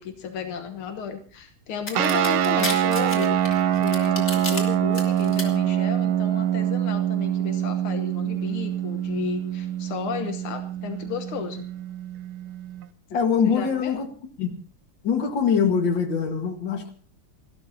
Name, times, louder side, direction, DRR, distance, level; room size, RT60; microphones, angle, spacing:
voice 1, 0.0-3.4 3.7-11.6 13.4-13.9, left 6 dB, 90° left, 7 dB, 2.0 m, -34 dB
sound 1, 1.9-4.6 4.9-5.4, left 3 dB, 40° left, 3.1 m, -31 dB
sound 2, 1.9-12.9, right 10 dB, 80° right, 1.7 m, -25 dB
voice 2, 13.1-14.1 14.4-14.5 15.0-16.9, left 6 dB, 60° left, 6 dB, 2.4 m, -23 dB
29.0 x 13.0 x 2.8 m, 0.43 s
omnidirectional pair, 2.3 m